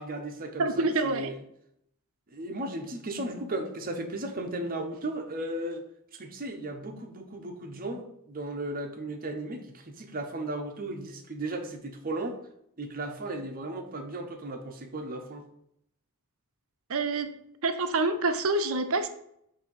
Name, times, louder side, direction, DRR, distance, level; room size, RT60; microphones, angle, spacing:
voice 1, 0.0-1.4 2.3-5.8 6.1-12.4 12.8-15.5, right 1 dB, 40° right, 5 dB, 0.8 m, -35 dB
voice 2, 0.6-1.3 16.9-17.3 17.6-19.1, right 3 dB, 65° right, 8 dB, 0.7 m, -26 dB
7.3 x 2.8 x 5.4 m, 0.74 s
head